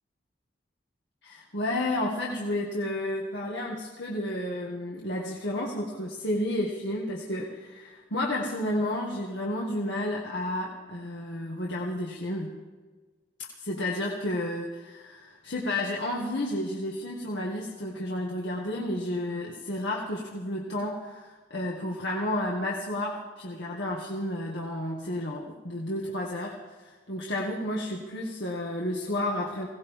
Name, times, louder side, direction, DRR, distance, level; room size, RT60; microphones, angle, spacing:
voice 1, 1.2-12.5 13.6-29.7, left 1 dB, 75° left, -3 dB, 1.9 m, -31 dB
22.0 x 17.5 x 3.7 m, 1.4 s
head